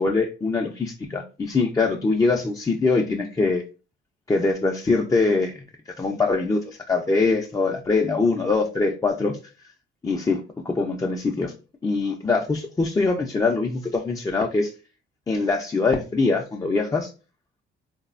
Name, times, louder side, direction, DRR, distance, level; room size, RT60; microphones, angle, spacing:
voice 1, 0.0-3.6 4.3-9.4 10.0-11.5 11.8-14.7 15.3-17.1, left 3 dB, 15° left, 0 dB, 0.3 m, -23 dB
3.1 x 2.0 x 2.3 m, 0.33 s
cardioid pair, 90°, 20 cm